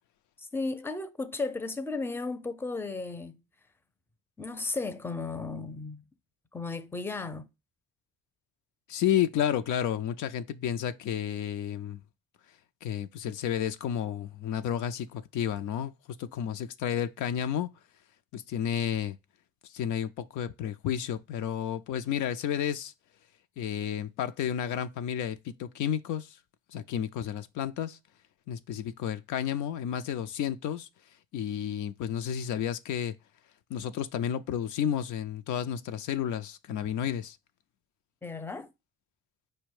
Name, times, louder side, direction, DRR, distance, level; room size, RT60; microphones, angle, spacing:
voice 1, 0.4-3.4 4.4-6.0 6.5-7.5 38.2-38.7, left 3 dB, 5° left, 0.5 m, -35 dB
voice 2, 8.9-12.0 12.4-17.8 18.3-19.2 19.6-22.9 23.6-26.4 26.7-28.0 28.5-33.2 33.4-37.4, left 9 dB, 80° left, 0.5 m, -31 dB
5.1 x 2.2 x 4.6 m
cardioid pair, 90°, 30 cm